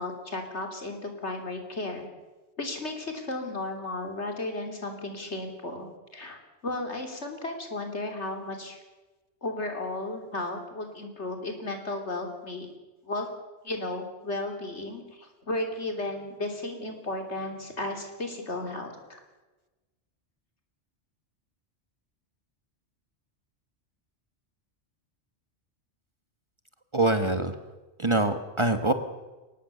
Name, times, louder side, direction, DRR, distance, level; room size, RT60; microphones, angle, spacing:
voice 1, 0.0-2.1 2.6-6.4 6.6-8.8 9.4-12.7 13.0-13.3 13.6-19.2, left 2 dB, 75° left, 4 dB, 3.5 m, -34 dB
voice 2, 26.9-27.5 28.0-28.9, right 2 dB, 25° right, 8 dB, 1.3 m, -24 dB
22.5 x 19.0 x 6.8 m, 1.2 s
omnidirectional pair, 1.2 m